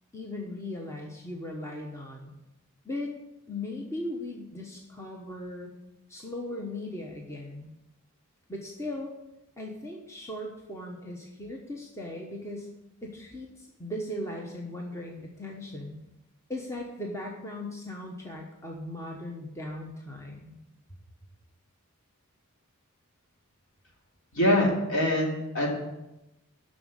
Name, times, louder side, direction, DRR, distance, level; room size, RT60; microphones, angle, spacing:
voice 1, 0.1-2.3 2.8-3.1 3.5-5.7 6.1-7.7 8.5-9.1 9.6-12.7 13.0-16.0 16.5-20.6, left 1 dB, 15° left, -1 dB, 1.0 m, -38 dB
voice 2, 24.3-25.7, left 1 dB, 60° left, -2 dB, 2.9 m, -24 dB
7.8 x 6.3 x 7.8 m, 0.94 s
head